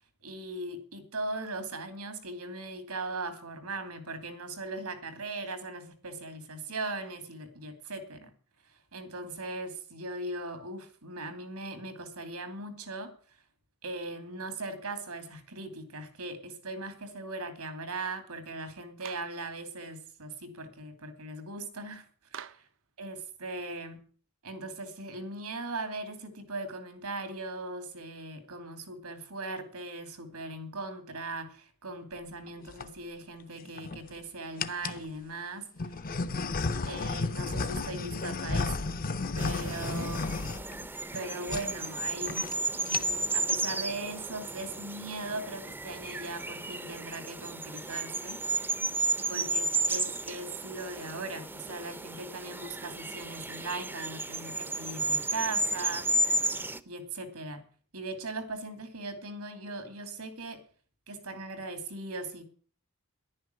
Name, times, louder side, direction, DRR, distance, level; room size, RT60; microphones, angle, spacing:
voice 1, 0.2-8.3 8.9-13.1 13.8-22.1 23.0-24.0 24.4-35.9 36.8-38.9 39.3-40.3 41.1-42.4 42.7-48.4 49.3-56.2 56.9-57.6 57.9-60.6 61.1-62.4, right 2 dB, 90° right, 9 dB, 2.7 m, -39 dB
Clapping, 19.0-19.4 22.3-22.8, right 8 dB, 60° right, 0.6 m, -45 dB
sound 1, 32.5-32.9 33.6-34.1 34.6-35.1 35.8-41.2 41.5-41.7 42.0-42.1 42.3-42.6 42.8-43.3, left 3 dB, 40° left, 0.6 m, -33 dB
sound 2, 39.4-56.8, right 2 dB, 10° right, 0.5 m, -33 dB
11.0 x 9.7 x 7.9 m, 0.43 s
head